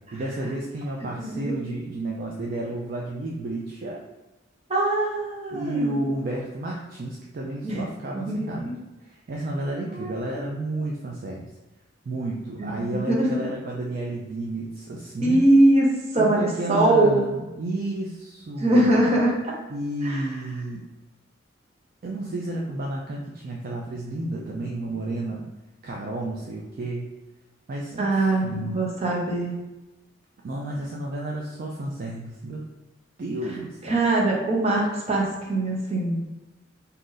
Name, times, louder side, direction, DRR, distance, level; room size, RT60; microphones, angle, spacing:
voice 1, 0.1-4.0 5.5-11.4 12.1-15.5 16.2-18.9 19.7-20.8 22.0-25.5 25.8-27.1 27.7-28.8 30.4-32.7 33.2-33.9, right 1 dB, 50° right, -2 dB, 0.4 m, -31 dB
voice 2, 1.2-1.5 4.7-6.0 7.6-7.8 8.1-8.7 9.9-10.2 12.9-13.3 15.2-15.9 16.1-17.2 18.6-19.5 20.0-20.2 28.0-29.5 33.9-36.2, right 1 dB, 35° right, -3 dB, 0.8 m, -22 dB
2.8 x 2.5 x 3.8 m, 1.1 s
head